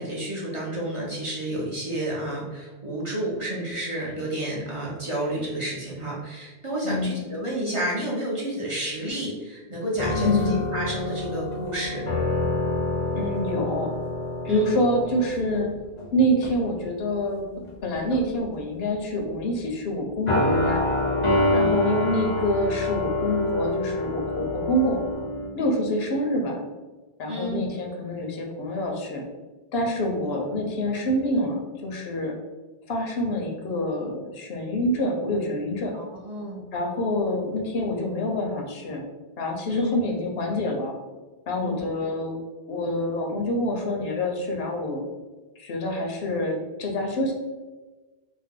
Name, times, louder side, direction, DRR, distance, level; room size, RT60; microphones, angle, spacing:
voice 1, 0.0-12.1 14.4-14.7 21.5-21.7 27.3-27.6 30.2-30.3 35.9-36.7 39.7-40.0 41.6-41.8, right 1 dB, 35° right, -5 dB, 0.6 m, -30 dB
voice 2, 6.8-7.2 10.2-10.6 13.1-13.9 14.4-15.7 16.1-17.4 17.8-20.8 21.5-25.0 25.5-26.6 27.2-29.2 29.7-32.3 32.9-35.9 36.7-39.0 39.4-40.9 41.5-42.4 42.7-45.0 45.6-47.3, left 1 dB, 75° left, 1 dB, 0.8 m, -26 dB
sound 1, 9.9-16.1 16.4-16.7 17.6-18.4 20.3-25.5, left 1 dB, 40° left, 0.5 m, -26 dB
2.6 x 2.0 x 3.6 m, 1.2 s
omnidirectional pair, 1.0 m